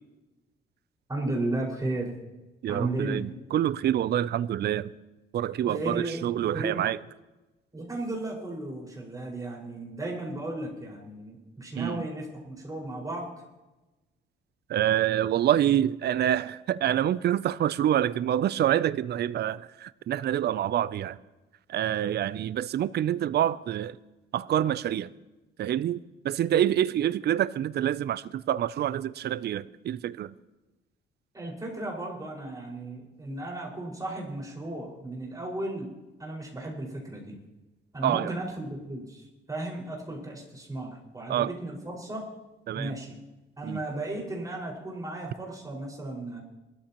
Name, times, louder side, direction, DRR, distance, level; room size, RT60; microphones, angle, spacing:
voice 1, 1.1-2.2 2.7-3.4 5.7-6.2 6.5-6.8 7.7-13.3 31.3-35.9 36.2-37.4 37.9-42.3 42.7-43.2 43.6-46.4, right 2 dB, 15° right, 5.3 m, -35 dB
voice 2, 2.6-4.9 5.3-7.0 11.8-12.0 14.7-21.2 21.7-24.0 24.3-25.1 25.6-26.0 26.2-30.3 38.0-38.3 41.3-41.5 42.7-43.0 43.6-43.8, right 11 dB, 55° right, 0.5 m, -26 dB
24.0 x 13.5 x 3.0 m
cardioid pair, 90°, 20 cm